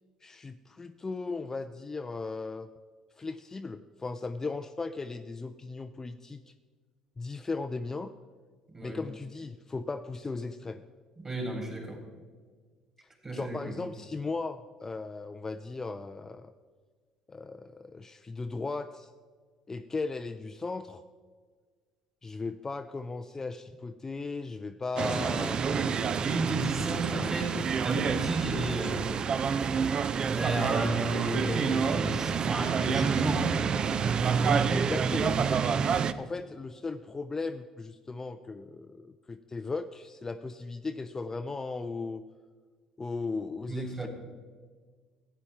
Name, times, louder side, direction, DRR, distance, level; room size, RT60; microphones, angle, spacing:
voice 1, 0.2-2.7 3.2-6.5 7.2-8.1 8.8-10.8 13.3-16.5 17.3-19.1 19.7-21.0 22.2-25.6 34.4-35.4 36.2-42.2 43.0-44.1, left 3 dB, 25° left, 9 dB, 0.4 m, -37 dB
voice 2, 11.2-12.0 13.2-13.6 25.2-29.1 30.2-34.6 34.9-35.3 43.7-44.1, right 2 dB, 25° right, 1 dB, 3.6 m, -33 dB
sound 1, 25.0-36.1, right 6 dB, 40° right, 0.4 m, -28 dB
14.5 x 8.9 x 3.4 m, 1.5 s
hypercardioid pair, 55°, 2 cm